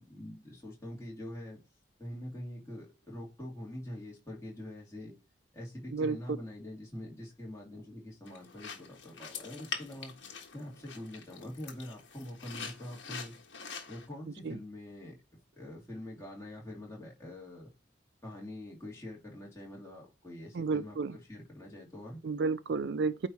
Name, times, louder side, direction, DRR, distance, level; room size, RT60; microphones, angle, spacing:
voice 1, 0.0-1.6 2.0-5.1 5.5-10.1 10.5-13.4 13.9-15.2 15.5-17.7 18.2-22.2, left 1 dB, 15° left, 2.7 m, -44 dB
sound 1, 8.3-14.1, left 6 dB, 65° left, 1.5 m, -44 dB
voice 2, 20.5-21.2 22.2-23.3, right 4 dB, 55° right, 0.4 m, -31 dB
9.1 x 3.1 x 4.2 m
head